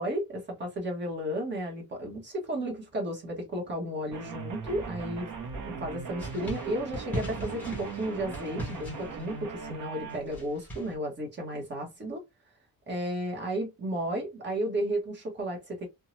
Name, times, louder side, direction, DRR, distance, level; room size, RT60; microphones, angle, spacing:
voice 1, 0.0-5.3 5.6-12.2 12.9-15.9, right 1 dB, 30° right, 1.1 m, -33 dB
sound 1, 4.1-10.2, right 5 dB, 55° right, 0.7 m, -39 dB
sound 2, 4.6-10.9, right 1 dB, 5° left, 1.0 m, -41 dB
2.7 x 2.2 x 3.0 m
cardioid pair, 165°, 37 cm